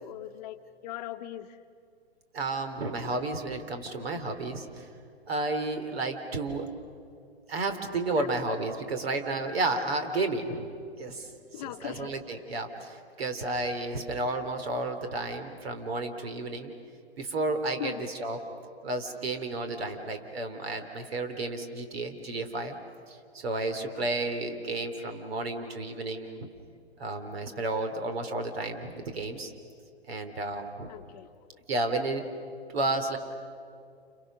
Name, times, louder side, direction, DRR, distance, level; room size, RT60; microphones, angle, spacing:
voice 1, 0.0-1.6 8.2-8.3 11.5-12.1 17.8-18.1 23.9-24.1 30.9-31.3, left 13 dB, 35° left, 7 dB, 1.0 m, -40 dB
voice 2, 2.3-4.9 5.3-6.7 7.5-10.7 11.0-16.7 17.2-18.4 18.8-22.7 23.1-26.5 27.0-29.5 30.1-30.9 31.7-32.3 32.7-33.2, right 2 dB, 65° right, 7 dB, 3.6 m, -32 dB
30.0 x 29.5 x 6.4 m, 2.4 s
hypercardioid pair, 130°, 33 cm